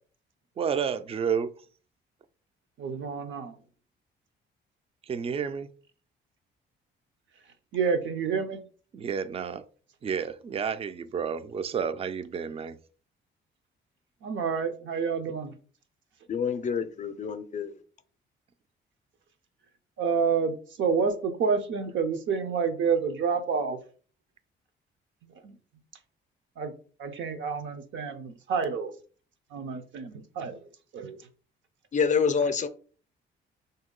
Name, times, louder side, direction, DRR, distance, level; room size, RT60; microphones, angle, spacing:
voice 1, 0.6-1.5 5.0-5.7 8.9-9.6 10.0-12.8, right 7 dB, 30° right, 0.4 m, -30 dB
voice 2, 2.8-3.6 7.7-8.6 14.2-15.5 20.0-23.8 25.4-25.5 26.6-26.7 27.0-28.9 29.5-30.6 30.9-31.2, right 5 dB, 70° right, 0.7 m, -28 dB
voice 3, 16.3-17.8 31.9-32.7, left 6 dB, 40° left, 0.5 m, -27 dB
3.5 x 2.8 x 3.8 m
cardioid pair, 90°, 20 cm